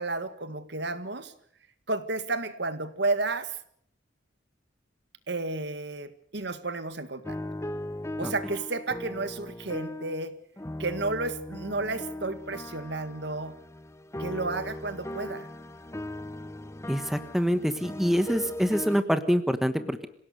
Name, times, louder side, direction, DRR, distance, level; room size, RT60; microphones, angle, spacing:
voice 1, 0.0-1.3 1.9-3.6 5.3-7.4 8.2-10.4 10.8-13.6 14.2-15.5, right 3 dB, 60° right, 12 dB, 1.8 m, -32 dB
sound 1, 7.2-10.3 10.6-19.0, left 1 dB, 15° left, 0.9 m, -38 dB
voice 2, 16.9-20.1, equal, ahead, 9 dB, 1.2 m, -26 dB
27.0 x 17.0 x 6.7 m, 0.64 s
head